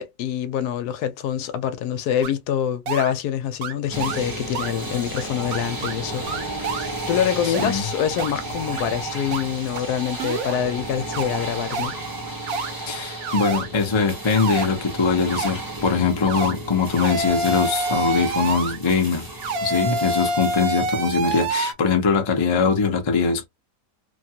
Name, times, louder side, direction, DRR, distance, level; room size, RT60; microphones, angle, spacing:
voice 1, 0.0-6.6 7.1-11.9, left 9 dB, 80° left, 1.1 m, -25 dB
sound 1, 2.2-2.3 2.9-3.1 3.6-3.7 4.0-4.2 4.5-4.7 5.2-5.3 5.5-5.9 6.3-6.9 7.5-7.7 8.2-8.3 8.8-8.9 9.3-9.4 9.8-9.9 10.2-10.6 11.1-11.2 11.7-11.9 12.5-12.7 13.2-13.7 14.3-14.7 15.3-15.5 16.3-16.5 17.0-18.8 19.4-21.7, right 3 dB, 65° right, 1.0 m, -27 dB
sound 2, 3.9-20.6, right 2 dB, 25° right, 0.5 m, -33 dB
voice 2, 7.4-7.8 12.9-19.3 19.6-23.5, left 5 dB, 35° left, 0.4 m, -22 dB
3.0 x 2.3 x 2.7 m
omnidirectional pair, 1.7 m